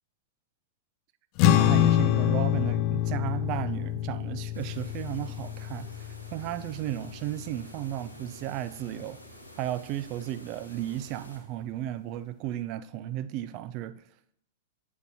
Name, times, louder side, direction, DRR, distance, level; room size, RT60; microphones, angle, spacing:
sound 1, 1.4-8.0, left 13 dB, 40° left, 0.4 m, -26 dB
voice 1, 1.4-9.2 9.6-14.0, right 13 dB, 40° right, 0.5 m, -34 dB
sound 2, 4.5-11.4, equal, 90° left, 2.2 m, -49 dB
11.0 x 8.2 x 2.8 m
figure-of-eight pair, 100°, 0 cm